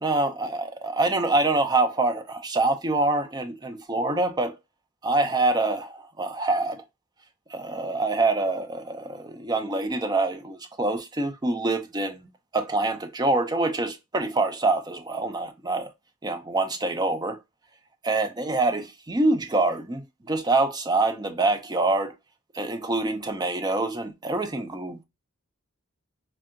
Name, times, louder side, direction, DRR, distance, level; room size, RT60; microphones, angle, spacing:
voice 1, 0.0-4.6 5.0-6.8 7.5-12.2 12.5-15.9 16.2-17.4 18.0-22.1 22.5-25.0, right 2 dB, 20° right, 0.5 m, -25 dB
4.5 x 2.7 x 2.5 m
head